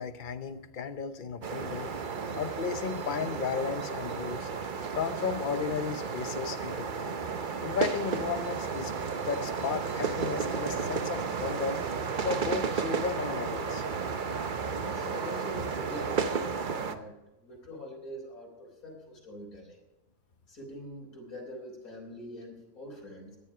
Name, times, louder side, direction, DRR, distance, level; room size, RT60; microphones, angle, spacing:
voice 1, 0.0-1.9 2.3-4.5 4.9-7.2 7.6-8.9 9.3-11.8 12.2-13.8, left 6 dB, 40° left, 9 dB, 0.9 m, -34 dB
sound 1, 1.4-17.0, right 5 dB, 40° right, 0.8 m, -33 dB
voice 2, 14.8-17.1 17.4-19.8 20.5-23.4, equal, 75° left, 0 dB, 4.5 m, -44 dB
17.0 x 10.5 x 5.0 m, 0.97 s
omnidirectional pair, 1.5 m